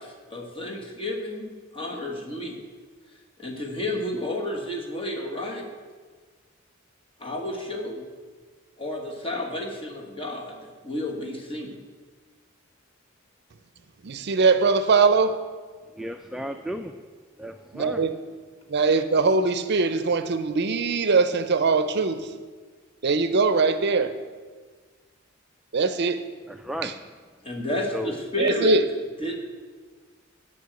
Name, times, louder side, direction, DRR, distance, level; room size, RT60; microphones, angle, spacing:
voice 1, 0.0-2.5 3.4-5.7 7.2-8.0 8.8-11.8 27.4-28.8 29.2-29.4, left 1 dB, 25° left, 0 dB, 1.5 m, -31 dB
voice 2, 14.0-15.4 17.7-18.2 18.7-22.3 23.0-24.1 25.7-26.2 26.8-27.0 28.4-28.8, right 4 dB, 55° right, 11 dB, 0.6 m, -21 dB
voice 3, 16.0-16.9 17.4-18.0 26.6-26.9 27.9-28.1, equal, ahead, 6 dB, 0.3 m, -33 dB
9.6 x 5.5 x 8.0 m, 1.5 s
head